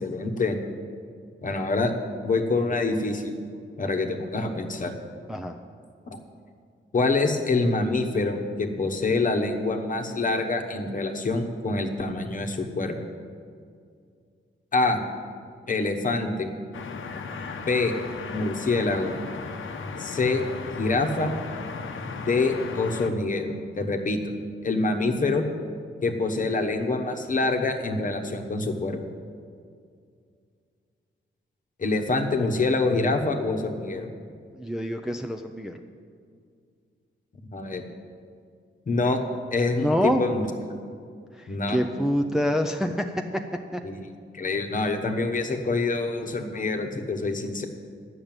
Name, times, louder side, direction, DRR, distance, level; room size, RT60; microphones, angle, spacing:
voice 1, 0.0-0.6 1.4-1.9 2.2-3.3 3.8-5.0 6.1-6.2 6.9-13.0 14.7-15.0 15.7-16.5 17.6-17.9 18.3-19.2 20.0-20.4 20.8-21.3 22.2-24.3 24.6-25.4 26.0-29.0 31.8-34.1 37.5-37.9 38.9-39.2 39.5-40.4 41.5-41.8 43.8-44.0 44.3-47.7, left 3 dB, 40° left, 4 dB, 1.1 m, -26 dB
sound 1, 16.7-23.1, left 4 dB, 75° left, 0.9 m, -36 dB
voice 2, 34.5-35.8 39.8-40.2 41.4-43.1 43.7-43.8, equal, ahead, 4 dB, 0.4 m, -26 dB
10.5 x 6.5 x 8.9 m, 2.2 s
wide cardioid pair, 140°, 21 cm